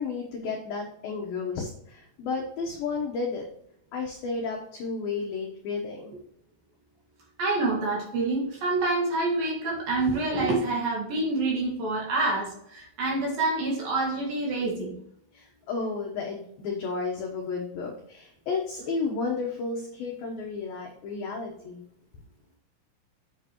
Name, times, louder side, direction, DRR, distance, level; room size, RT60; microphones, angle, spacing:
voice 1, 0.0-3.4 3.9-6.1 15.3-21.8, left 4 dB, 75° left, 1 dB, 2.1 m, -32 dB
voice 2, 7.4-14.9, right 2 dB, 55° right, -2 dB, 3.1 m, -27 dB
8.6 x 8.4 x 3.0 m, 0.71 s
omnidirectional pair, 5.7 m